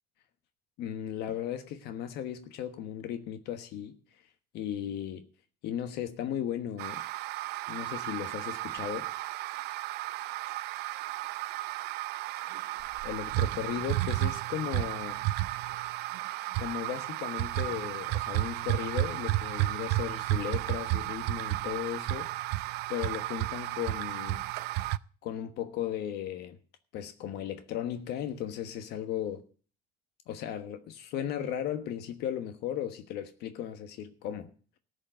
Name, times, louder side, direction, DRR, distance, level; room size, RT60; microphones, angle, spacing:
voice 1, 0.8-4.0 4.5-5.3 5.6-7.0 7.7-9.1 13.0-15.2 16.6-22.3 22.9-24.4 25.2-26.6 26.9-29.4 30.3-34.5, left 10 dB, 65° left, 1.3 m, -36 dB
sound 1, 6.8-25.0, right 17 dB, 65° right, 0.5 m, -33 dB
14.5 x 5.3 x 9.1 m
cardioid pair, 125°, 19 cm